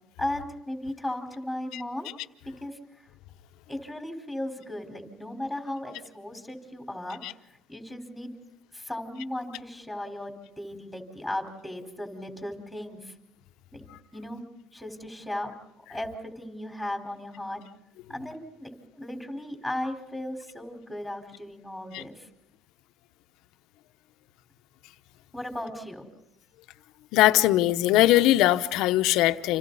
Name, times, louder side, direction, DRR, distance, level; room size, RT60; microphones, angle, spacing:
voice 1, 0.2-2.1 2.4-2.8 3.7-7.2 7.7-8.3 8.7-13.1 13.7-13.8 14.1-14.4 14.7-15.5 15.8-17.6 18.1-22.3 25.3-26.1, left 1 dB, 5° left, 4 dB, 4.5 m, -36 dB
voice 2, 27.1-29.6, left 15 dB, 80° left, 10 dB, 0.9 m, -21 dB
29.5 x 27.5 x 4.1 m, 0.85 s
supercardioid pair, 95°, 0 cm